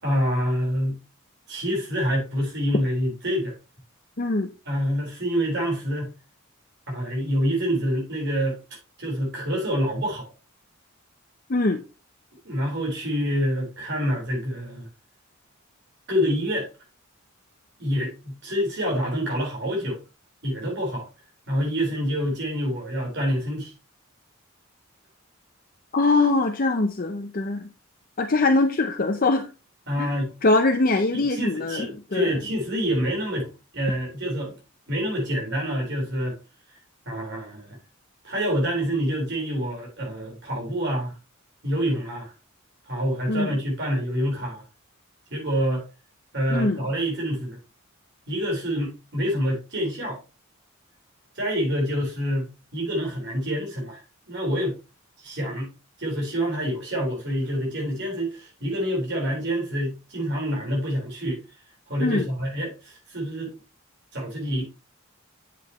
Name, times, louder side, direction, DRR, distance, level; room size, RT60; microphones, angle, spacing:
voice 1, 0.0-1.0 1.5-3.5 4.7-6.1 6.9-8.6 9.0-10.3 12.4-14.9 16.1-16.7 17.8-20.0 20.4-21.0 21.5-23.7 29.9-30.3 31.1-33.5 33.7-34.5 34.9-36.4 37.1-37.8 38.2-41.1 41.6-42.3 42.9-44.6 45.3-45.8 46.3-47.6 48.3-50.2 51.3-54.8 55.2-55.7 56.0-61.4 61.9-63.5 64.1-64.6, equal, 55° right, 4.3 m, -27 dB
voice 2, 4.2-4.5 11.5-11.8 25.9-27.7 28.2-29.5 30.0-30.1 30.4-32.3 43.3-43.6 46.5-46.8 62.0-62.3, left 2 dB, 40° left, 0.6 m, -22 dB
8.1 x 7.6 x 3.0 m
head